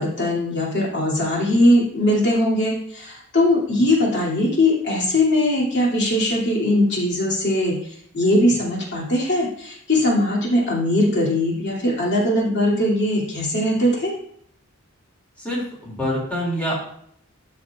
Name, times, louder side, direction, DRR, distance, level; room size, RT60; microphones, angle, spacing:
voice 1, 0.0-14.1, left 1 dB, 55° left, -4 dB, 2.6 m, -20 dB
voice 2, 15.4-16.7, equal, 5° left, -6 dB, 2.5 m, -26 dB
13.0 x 6.1 x 2.4 m, 0.67 s
head